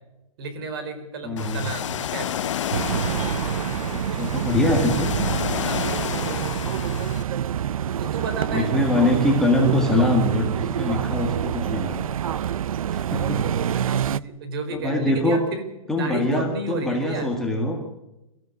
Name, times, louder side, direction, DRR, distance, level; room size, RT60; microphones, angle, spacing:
voice 1, 0.4-2.5 5.6-5.9 8.0-8.7 10.6-10.8 13.3-13.4 13.7-15.6 16.0-17.3, right 4 dB, 40° right, 9 dB, 4.4 m, -32 dB
voice 2, 1.2-1.6 3.9-5.2 8.5-12.0 12.9-13.4 14.7-15.4 15.9-17.8, left 1 dB, 5° left, -1 dB, 1.9 m, -23 dB
Ocean, 1.4-7.2, left 10 dB, 60° left, 0.8 m, -30 dB
sound 1, 2.7-14.2, right 9 dB, 75° right, 0.6 m, -26 dB
24.0 x 14.5 x 8.3 m, 0.93 s
hypercardioid pair, 170°, 18 cm